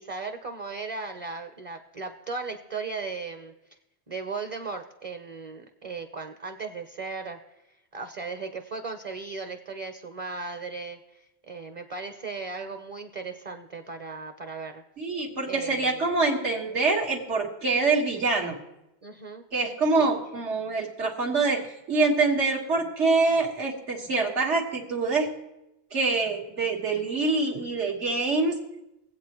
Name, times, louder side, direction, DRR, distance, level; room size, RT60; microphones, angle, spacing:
voice 1, 0.0-3.5 4.1-7.4 7.9-11.2 11.5-14.8 15.5-16.0 19.0-19.4 20.0-20.1, right 4 dB, 35° right, 6 dB, 0.7 m, -36 dB
voice 2, 15.0-18.6 19.5-25.3 25.9-28.6, right 3 dB, 85° right, 0 dB, 2.0 m, -25 dB
21.0 x 8.2 x 3.0 m, 0.91 s
omnidirectional pair, 1.2 m